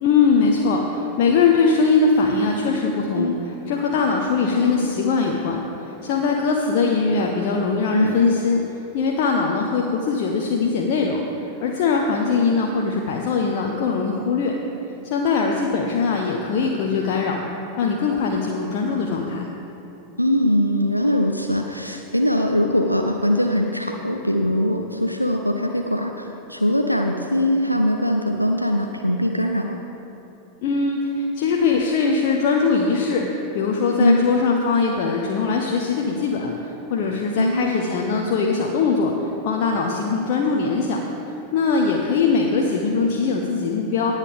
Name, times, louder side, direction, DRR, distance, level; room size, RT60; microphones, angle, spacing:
voice 1, 0.0-3.3 3.7-8.6 8.9-14.5 15.0-17.4 17.8-19.4 30.6-41.0 41.5-44.1, left 4 dB, 45° left, 0 dB, 0.9 m, -21 dB
voice 2, 20.2-29.8 34.0-34.2 37.4-37.8, equal, 90° left, 3 dB, 0.6 m, -21 dB
18.0 x 8.2 x 3.6 m, 3.0 s
figure-of-eight pair, 90°, 0 cm